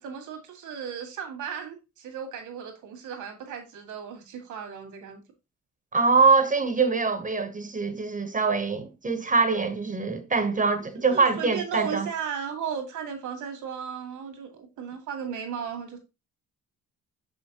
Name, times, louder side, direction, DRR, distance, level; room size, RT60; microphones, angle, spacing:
voice 1, 0.0-5.2 11.1-16.0, right 7 dB, 85° right, 2.0 m, -35 dB
voice 2, 5.9-12.1, right 4 dB, 25° right, 0.9 m, -23 dB
6.3 x 5.7 x 2.9 m
cardioid pair, 90°, 30 cm